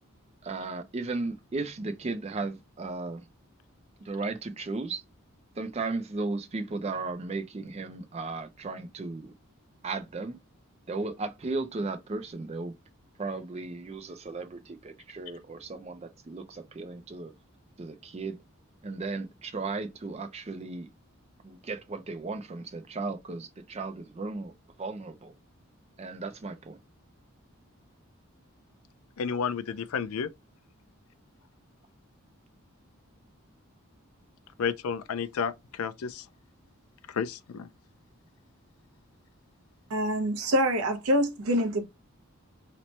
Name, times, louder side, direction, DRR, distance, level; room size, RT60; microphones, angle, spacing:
voice 1, 0.4-3.2 4.0-5.0 5.6-9.3 9.8-10.4 10.9-12.7 13.2-17.3 17.8-18.4 18.8-20.9 21.4-24.5 24.8-25.3 26.0-26.8, right 3 dB, 30° right, 0.4 m, -35 dB
voice 2, 29.2-30.3 34.6-36.2 37.1-37.7, left 6 dB, 80° left, 0.4 m, -31 dB
voice 3, 39.9-41.9, equal, 80° right, 0.7 m, -25 dB
3.0 x 2.1 x 3.9 m
head